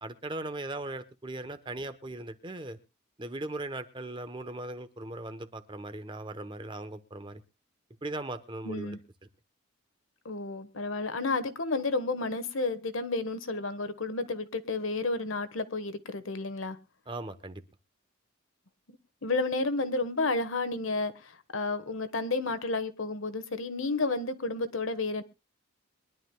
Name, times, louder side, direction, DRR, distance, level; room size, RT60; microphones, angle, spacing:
voice 1, 0.0-2.8 3.2-7.4 8.0-9.0 17.1-17.6, right 2 dB, 25° right, 0.9 m, -38 dB
voice 2, 8.6-9.0 10.2-16.8 19.2-25.2, left 3 dB, 70° left, 1.3 m, -31 dB
23.0 x 11.5 x 2.2 m
head